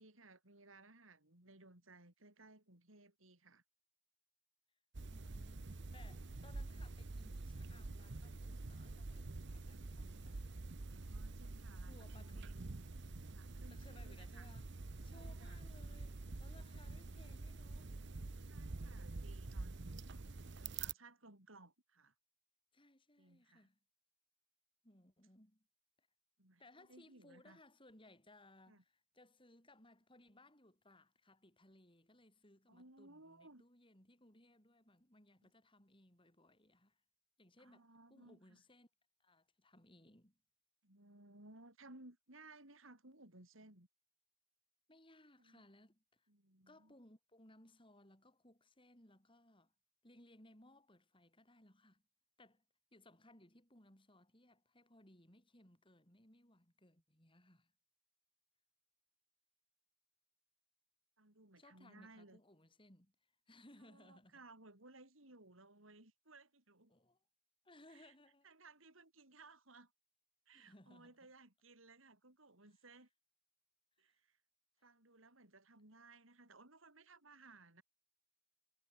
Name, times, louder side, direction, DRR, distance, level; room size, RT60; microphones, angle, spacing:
voice 1, 0.0-3.6 10.8-12.6 13.3-14.5 15.1-15.6 18.5-19.8 20.5-22.1 23.2-23.7 26.4-27.6 28.7-28.8 32.7-33.6 35.4-35.5 37.6-38.6 40.8-43.9 45.4-45.6 46.3-47.0 61.2-62.4 63.8-66.9 67.9-68.1 68.4-69.9 70.5-73.1 74.0-74.4 74.8-77.8, right 2 dB, 85° right, 6.0 m, -61 dB
sound 1, 4.9-20.9, right 3 dB, 60° right, 0.9 m, -47 dB
voice 2, 5.1-10.5 11.8-12.7 13.7-17.9 22.7-23.8 24.8-25.7 26.0-26.1 26.6-37.0 37.4-38.9 39.2-40.4 44.9-46.3 46.7-49.7 50.0-52.0 52.4-52.6 52.9-57.7 61.6-64.4 66.9-67.2 67.6-68.5 70.5-71.2 74.1-74.2 74.8-74.9, left 1 dB, 25° left, 7.2 m, -65 dB
head